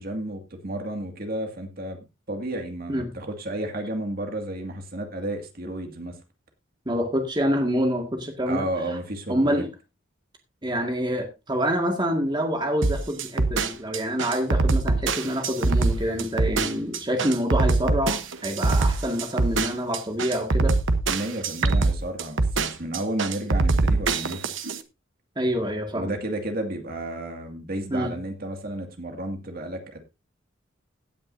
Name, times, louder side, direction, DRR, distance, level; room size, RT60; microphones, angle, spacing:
voice 1, 0.0-6.2 8.5-9.7 21.1-24.4 25.9-30.0, right 1 dB, 50° right, 5 dB, 2.2 m, -32 dB
voice 2, 6.9-8.7 9.3-9.7 10.6-20.7 25.4-26.1 27.9-28.1, equal, 25° right, 3 dB, 2.0 m, -26 dB
sound 1, 12.8-24.8, right 3 dB, 75° right, 1.1 m, -23 dB
16.5 x 9.6 x 2.7 m, 0.26 s
head